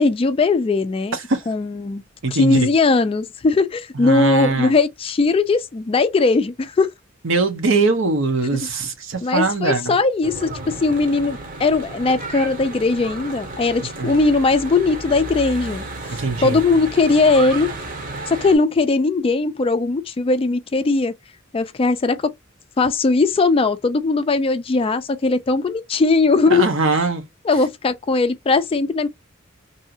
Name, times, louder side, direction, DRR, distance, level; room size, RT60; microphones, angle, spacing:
voice 1, 0.0-1.2 1.5-2.0 2.3-6.9 9.2-15.8 16.4-17.7 18.3-21.1 21.5-22.3 22.8-26.7 27.4-29.1, left 3 dB, 25° left, 0.3 m, -19 dB
voice 2, 1.1-1.4 2.2-2.7 3.9-4.7 7.2-10.0 14.0-14.1 16.1-16.6 26.5-27.3, right 3 dB, 70° right, 0.7 m, -21 dB
Church bell / Traffic noise roadway noise, 10.2-18.6, right 2 dB, 45° right, 0.9 m, -33 dB
2.7 x 2.4 x 2.7 m
head